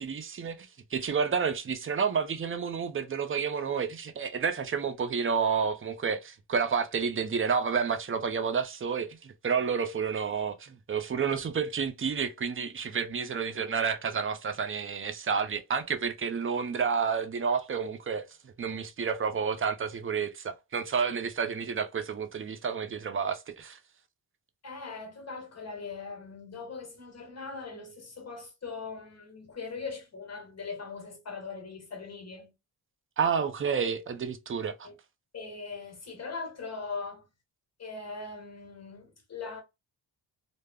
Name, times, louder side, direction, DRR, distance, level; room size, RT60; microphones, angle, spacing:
voice 1, 0.0-23.8 33.2-34.9, right 6 dB, 30° right, 0.4 m, -30 dB
voice 2, 24.6-32.5 34.8-34.9 35.3-37.3 37.8-39.6, left 4 dB, 35° left, 1.2 m, -40 dB
2.3 x 2.0 x 3.3 m
cardioid pair, 95°, 44 cm